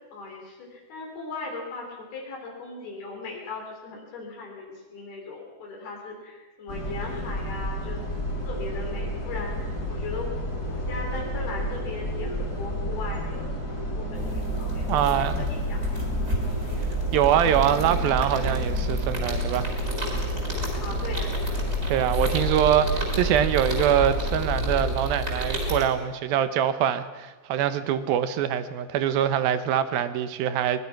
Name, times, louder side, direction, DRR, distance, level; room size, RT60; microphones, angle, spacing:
voice 1, 0.1-1.9 2.1-8.0 8.4-10.3 10.7-16.0 20.8-21.3, left 3 dB, 80° left, -1 dB, 5.5 m, -38 dB
sound 1, 6.7-25.0, equal, 25° left, 4.5 m, -31 dB
sound 2, 14.1-25.9, right 1 dB, 20° right, 5.6 m, -30 dB
voice 2, 14.9-15.3 17.1-19.7 21.9-30.8, right 10 dB, 80° right, 11 dB, 2.7 m, -24 dB
24.0 x 20.5 x 5.9 m, 1.2 s
omnidirectional pair, 4.4 m